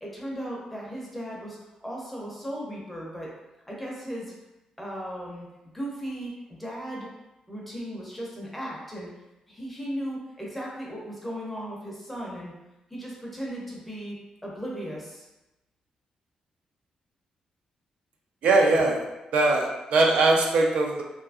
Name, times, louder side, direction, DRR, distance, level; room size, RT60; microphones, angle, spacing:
voice 1, 0.0-3.3 3.7-4.3 4.8-5.5 5.7-7.1 7.5-9.1 9.5-12.5 12.9-14.2 14.4-15.3, equal, 5° left, -4 dB, 0.5 m, -36 dB
voice 2, 18.4-19.1 19.3-21.0, right 2 dB, 75° right, 0 dB, 0.4 m, -21 dB
2.6 x 2.4 x 2.3 m, 1.0 s
wide cardioid pair, 175°, 2 cm